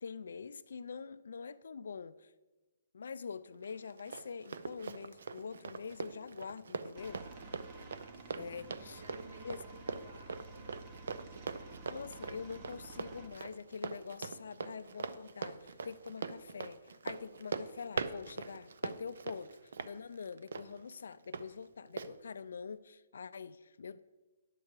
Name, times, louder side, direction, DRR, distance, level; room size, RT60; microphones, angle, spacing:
voice 1, 0.0-2.3 2.9-7.2 8.4-9.0 9.4-9.6 11.9-24.0, left 5 dB, 75° left, 0.4 m, -45 dB
Run, 3.6-21.4 22.0-22.1, right 5 dB, 70° right, 0.6 m, -42 dB
Aircraft, 7.0-13.3, right 3 dB, 30° right, 1.1 m, -52 dB
voice 2, 7.3-8.0 8.3-12.0, right 3 dB, 90° right, 1.5 m, -58 dB
10.5 x 7.5 x 4.7 m
hypercardioid pair, 165°, 0 cm